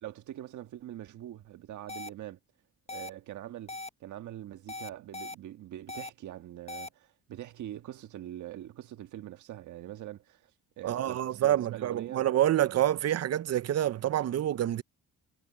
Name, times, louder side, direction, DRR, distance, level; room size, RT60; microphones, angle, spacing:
voice 1, 0.0-2.4 2.9-10.5 10.8-12.2, right 13 dB, 75° right, 1.6 m, -43 dB
sound 1, 1.9-2.1 2.9-3.1 3.7-3.9 4.7-5.3 5.9-6.1 6.7-6.9, left 2 dB, 20° left, 0.9 m, -39 dB
voice 2, 10.8-14.8, right 12 dB, 55° right, 0.8 m, -27 dB
cardioid pair, 90°, 30 cm